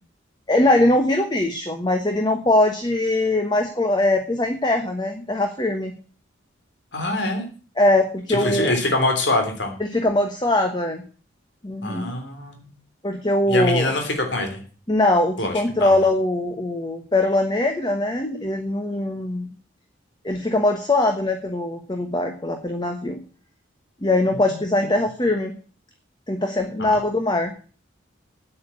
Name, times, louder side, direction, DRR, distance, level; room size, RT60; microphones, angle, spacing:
voice 1, 0.5-5.9 7.8-8.8 9.9-11.0 11.6-12.1 13.0-13.9 14.9-19.5 20.2-23.2 24.0-25.5 26.3-27.5, left 1 dB, 20° left, 5 dB, 1.2 m, -21 dB
voice 2, 6.9-7.4 8.3-9.7 11.8-12.7 13.5-14.6 15.4-15.5 15.8-16.0 24.5-24.6 26.8-27.0, left 2 dB, 60° left, 4 dB, 3.3 m, -24 dB
9.0 x 8.6 x 8.4 m, 0.40 s
head